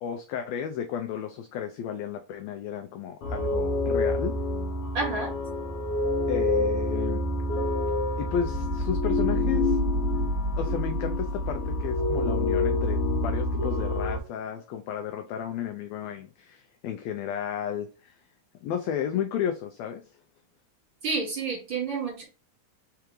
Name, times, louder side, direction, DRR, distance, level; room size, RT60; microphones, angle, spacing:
voice 1, 0.0-4.3 6.3-7.2 8.2-9.8 10.6-18.1 18.6-20.0, left 8 dB, 80° left, 1.5 m, -33 dB
sound 1, 3.2-14.2, left 2 dB, 65° left, 1.6 m, -27 dB
voice 2, 4.9-5.3 21.0-22.2, right 4 dB, 45° right, 2.2 m, -29 dB
4.8 x 3.4 x 3.0 m
omnidirectional pair, 3.5 m